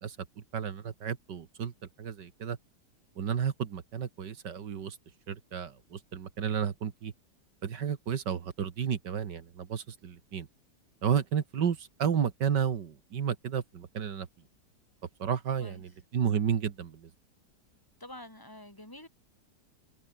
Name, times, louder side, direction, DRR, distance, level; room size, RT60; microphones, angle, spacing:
voice 1, 0.5-1.7 2.0-2.6 3.2-5.0 5.3-7.1 7.6-10.5 11.0-14.3 15.2-17.1, right 8 dB, 80° right, 2.2 m, -32 dB
voice 2, 18.0-19.1, left 1 dB, 10° left, 6.0 m, -47 dB
omnidirectional pair, 1.8 m